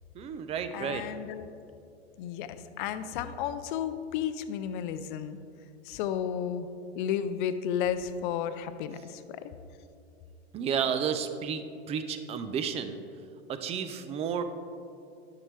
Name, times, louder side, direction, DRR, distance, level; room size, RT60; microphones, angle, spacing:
voice 1, 0.1-1.0 10.5-13.0 13.5-14.4, right 7 dB, 20° right, 10 dB, 0.4 m, -32 dB
voice 2, 0.7-1.5 2.2-5.4 5.8-6.7 7.0-9.4, left 9 dB, 50° left, 11 dB, 0.6 m, -33 dB
10.5 x 6.8 x 3.3 m, 2.5 s
hypercardioid pair, 115°, 32 cm